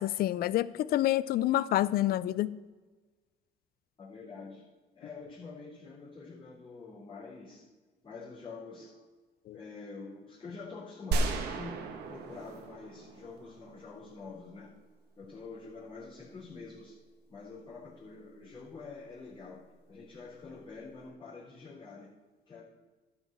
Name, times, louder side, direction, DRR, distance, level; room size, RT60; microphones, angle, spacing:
voice 1, 0.0-2.5 9.5-9.6, left 14 dB, 65° left, 18 dB, 0.5 m, -28 dB
voice 2, 4.0-4.6 5.0-7.7 8.0-9.1 9.5-11.8 12.1-14.7 15.2-17.0 17.3-19.6 19.9-22.1 22.5-22.6, left 4 dB, 30° left, -9 dB, 3.6 m, -46 dB
sound 1, 11.1-14.0, right 3 dB, 75° right, 1.5 m, -34 dB
12.5 x 5.5 x 7.4 m, 1.3 s
cardioid pair, 110°, 17 cm